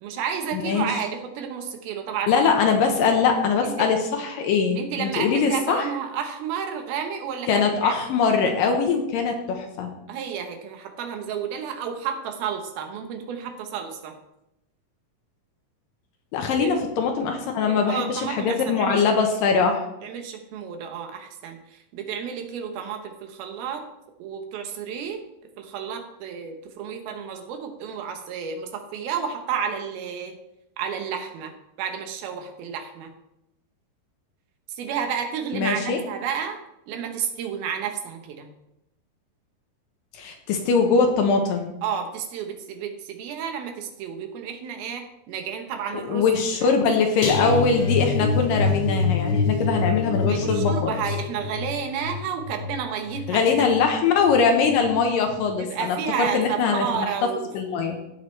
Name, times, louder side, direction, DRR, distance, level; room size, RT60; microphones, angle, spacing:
voice 1, 0.0-2.3 3.0-3.1 3.6-3.9 4.8-7.9 10.1-14.2 16.6-16.7 17.6-19.1 20.0-23.9 24.2-25.2 25.6-30.4 30.8-33.1 34.7-36.6 36.9-38.5 41.8-46.3 46.6-46.8 50.3-53.5 55.5-57.5, right 7 dB, 75° right, 5 dB, 2.8 m, -31 dB
voice 2, 0.5-0.9 2.3-5.9 7.5-9.9 16.3-19.8 35.5-36.0 40.1-41.7 46.1-50.9 53.3-57.1 57.5-58.0, left 5 dB, 75° left, 4 dB, 2.4 m, -22 dB
sound 1, 47.2-54.3 54.6-54.9 55.3-55.4, left 4 dB, 55° left, 1.6 m, -26 dB
16.0 x 6.6 x 3.2 m, 0.86 s
omnidirectional pair, 4.5 m